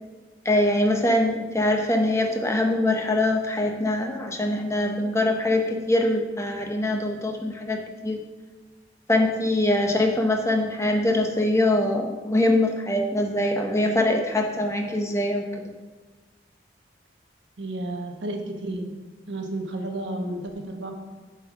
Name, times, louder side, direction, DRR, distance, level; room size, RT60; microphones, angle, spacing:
voice 1, 0.4-8.2 9.1-15.7, left 1 dB, 15° left, 3 dB, 0.7 m, -23 dB
voice 2, 17.6-18.9 19.3-20.9, right 1 dB, 80° right, 3 dB, 1.0 m, -32 dB
7.3 x 4.4 x 6.1 m, 1.3 s
head